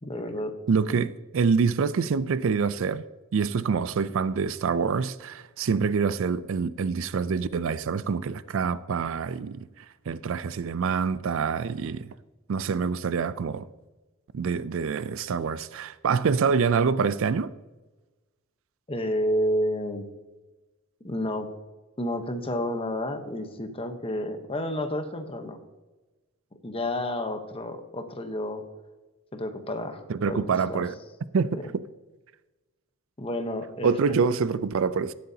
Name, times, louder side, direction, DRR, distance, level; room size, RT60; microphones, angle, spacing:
voice 1, 0.0-0.6 0.9-1.0 18.9-20.1 21.0-21.5 22.0-25.6 26.6-28.6 29.3-30.9 33.2-34.3, left 1 dB, 25° left, 0.9 m, -30 dB
voice 2, 0.7-3.0 3.3-9.7 10.1-12.1 12.5-13.7 14.3-17.5 30.1-30.9 31.3-31.5 33.8-35.1, right 5 dB, 60° right, 0.4 m, -26 dB
17.0 x 7.8 x 2.8 m
head